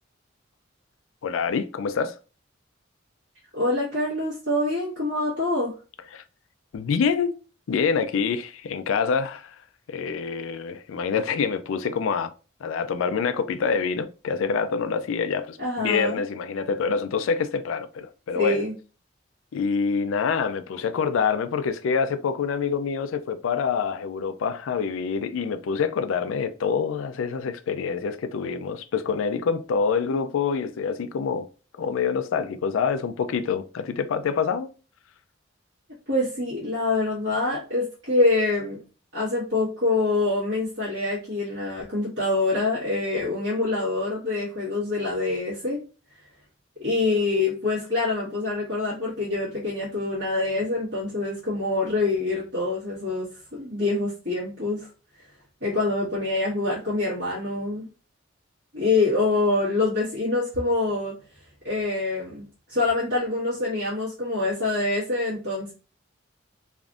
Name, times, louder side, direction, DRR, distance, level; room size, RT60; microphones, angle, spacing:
voice 1, 1.2-2.2 6.1-6.2 6.7-7.3 7.7-9.6 9.9-12.3 12.6-18.6 19.5-31.5 31.8-34.7, left 6 dB, 80° left, 0.3 m, -26 dB
voice 2, 3.5-5.7 15.6-16.2 18.3-18.7 36.1-38.8 39.1-45.8 46.8-53.3 53.5-54.9 55.6-57.9 58.7-61.1 61.6-62.4 62.7-65.7, left 2 dB, 70° right, 1.4 m, -25 dB
3.3 x 2.5 x 2.4 m
head